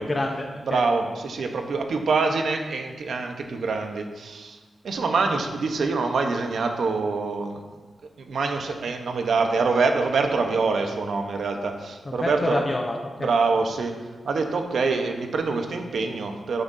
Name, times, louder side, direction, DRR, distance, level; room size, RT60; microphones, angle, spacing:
voice 1, 0.0-0.8 12.1-13.3, left 1 dB, 30° left, 1 dB, 0.8 m, -28 dB
voice 2, 0.6-4.6 4.8-7.6 8.2-12.6 13.2-13.9 14.2-16.6, right 4 dB, 75° right, 4 dB, 1.0 m, -25 dB
10.0 x 9.4 x 2.7 m, 1.3 s
wide cardioid pair, 100°, 0 cm